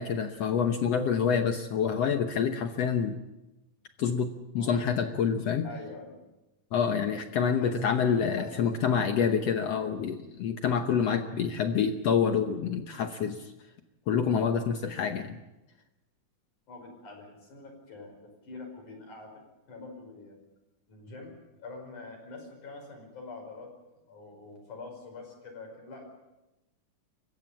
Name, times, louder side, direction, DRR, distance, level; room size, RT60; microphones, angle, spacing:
voice 1, 0.0-3.2 4.0-5.7 6.7-13.5 14.1-15.4, left 7 dB, 75° left, 6 dB, 1.5 m, -27 dB
voice 2, 5.6-6.2 7.4-9.3 16.7-19.4 19.7-20.4 20.9-21.3 21.6-23.7 24.1-26.1, left 3 dB, 55° left, 3 dB, 6.5 m, -45 dB
28.5 x 15.5 x 7.4 m, 0.99 s
omnidirectional pair, 4.3 m